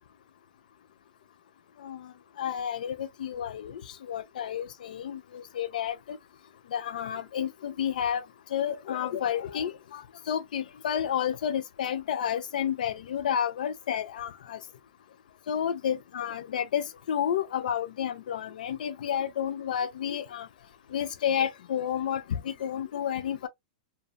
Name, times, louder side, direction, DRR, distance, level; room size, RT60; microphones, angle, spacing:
voice 1, 2.4-3.8 4.1-6.2 6.7-8.2 8.5-10.0 10.3-14.6 15.5-20.5 20.9-23.5, left 9 dB, 80° left, 0.4 m, -31 dB
2.6 x 2.3 x 2.3 m
supercardioid pair, 160°, 4 cm